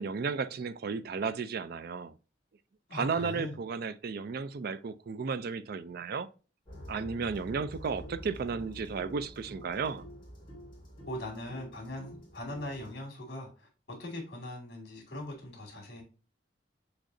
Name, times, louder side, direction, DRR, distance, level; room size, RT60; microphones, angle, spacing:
voice 1, 0.0-2.1 2.9-6.3 6.9-10.0, right 5 dB, 55° right, 0.4 m, -34 dB
voice 2, 2.9-3.6 11.1-16.0, left 1 dB, 60° left, 2.3 m, -40 dB
sound 1, 6.7-12.9, equal, 25° left, 2.0 m, -48 dB
6.3 x 3.1 x 2.6 m
head